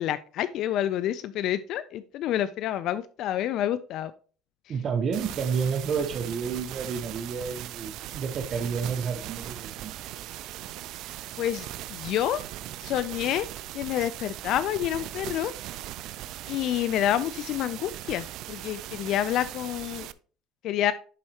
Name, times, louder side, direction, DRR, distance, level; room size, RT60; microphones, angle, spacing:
voice 1, 0.0-4.1 11.4-12.4 12.8-13.5 13.7-15.5 16.5-20.1 20.6-20.9, left 11 dB, 55° left, 14 dB, 0.4 m, -28 dB
voice 2, 4.7-9.9, right 6 dB, 40° right, 6 dB, 0.9 m, -30 dB
sound 1, 5.1-20.1, right 14 dB, 60° right, 0.4 m, -39 dB
11.0 x 4.3 x 2.8 m, 0.40 s
cardioid pair, 130°, 0 cm